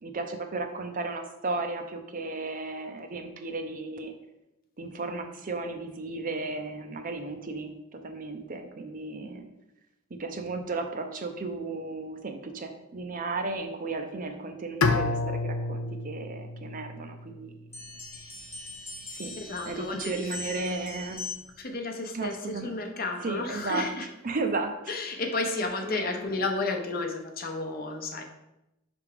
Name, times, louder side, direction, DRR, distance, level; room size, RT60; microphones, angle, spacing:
voice 1, 0.0-4.1 4.8-9.5 10.1-17.5 19.1-19.4 19.7-21.3 22.1-22.7 23.2-23.9 24.2-24.9 25.6-26.2, right 3 dB, 40° right, 6 dB, 0.6 m, -34 dB
Bowed string instrument, 14.8-17.8, left 3 dB, 90° left, 0.5 m, -30 dB
sound 1, 17.7-21.6, left 2 dB, 10° left, 1.1 m, -41 dB
voice 2, 19.4-20.3 21.6-24.1 24.9-28.2, left 3 dB, 45° left, 4 dB, 0.7 m, -32 dB
5.7 x 3.5 x 4.9 m, 0.91 s
head